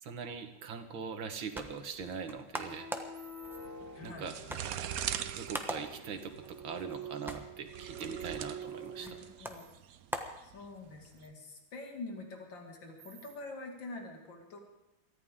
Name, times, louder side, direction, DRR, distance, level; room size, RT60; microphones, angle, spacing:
voice 1, 0.0-2.9 4.0-4.4 5.2-9.2, right 5 dB, 90° right, 7 dB, 2.1 m, -42 dB
sound 1, 1.1-11.1, equal, ahead, 0.8 m, -45 dB
sound 2, 2.6-9.5, right 5 dB, 30° right, 3.9 m, -46 dB
sound 3, 3.6-11.2, right 10 dB, 65° right, 0.9 m, -42 dB
voice 2, 3.9-4.3 9.0-9.6 10.4-14.6, left 2 dB, 70° left, 1 dB, 3.0 m, -46 dB
23.0 x 14.5 x 3.7 m, 0.94 s
omnidirectional pair, 2.1 m